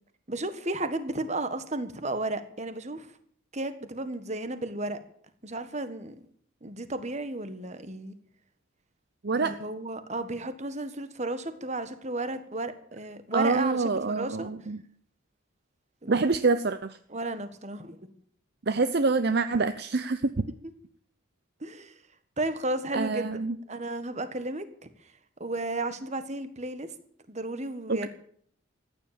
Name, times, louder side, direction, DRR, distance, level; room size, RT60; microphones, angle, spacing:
voice 1, 0.3-3.1 3.5-5.0 5.4-6.1 6.6-8.1 9.3-14.5 16.0-16.2 17.1-18.1 21.6-22.0 22.4-23.4 23.7-24.9 25.4-26.9 27.3-28.1, right 2 dB, 35° right, 10 dB, 1.6 m, -33 dB
voice 2, 13.3-14.8 16.1-17.0 18.7-20.4 22.9-23.6 27.9-28.1, right 3 dB, 50° right, 11 dB, 0.7 m, -26 dB
15.0 x 10.5 x 8.9 m, 0.62 s
head